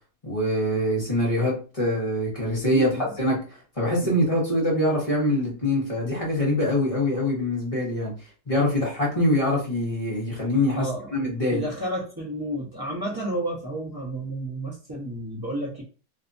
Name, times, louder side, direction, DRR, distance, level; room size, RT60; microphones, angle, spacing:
voice 1, 0.2-3.4 3.8-8.1 8.5-11.6, left 1 dB, 25° left, -5 dB, 0.8 m, -24 dB
voice 2, 2.7-3.1 4.0-4.1 10.7-11.2 11.5-15.8, right 1 dB, 20° right, -4 dB, 0.7 m, -31 dB
3.2 x 2.8 x 2.6 m, 0.36 s
omnidirectional pair, 2.0 m